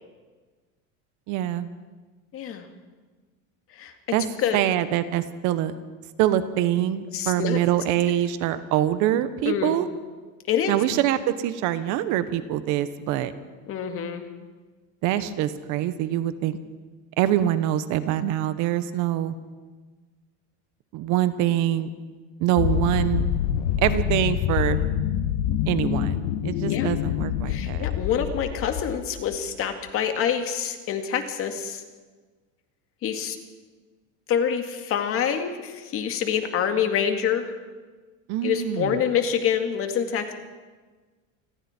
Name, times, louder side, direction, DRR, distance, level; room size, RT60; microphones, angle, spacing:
voice 1, 1.3-1.7 4.1-4.2 4.5-5.7 6.2-9.9 10.7-13.3 15.0-16.6 17.2-19.3 20.9-21.9 22.4-23.3 23.8-24.8 25.7-27.9 38.3-39.0, right 12 dB, 55° right, 12 dB, 1.3 m, -24 dB
voice 2, 2.3-2.7 3.7-3.9 4.4-4.6 7.1-7.6 8.5-8.6 9.5-9.8 10.5-10.8 13.7-14.3 26.7-26.9 27.5-31.8 33.0-33.4 34.3-37.5 38.4-40.3, left 8 dB, 35° left, 6 dB, 2.2 m, -26 dB
sound 1, 22.6-29.4, left 10 dB, 70° left, 1.6 m, -26 dB
28.5 x 20.5 x 4.5 m, 1.3 s
cardioid pair, 160°, 36 cm